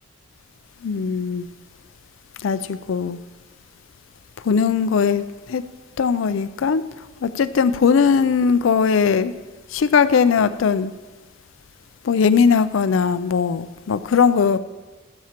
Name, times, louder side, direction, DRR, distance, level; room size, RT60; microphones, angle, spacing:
voice 1, 0.8-1.5 2.4-3.2 4.4-5.6 6.0-6.8 7.2-9.3 9.7-10.9 12.0-14.6, left 6 dB, 70° left, 13 dB, 0.4 m, -19 dB
14.5 x 12.0 x 2.9 m, 1.3 s
head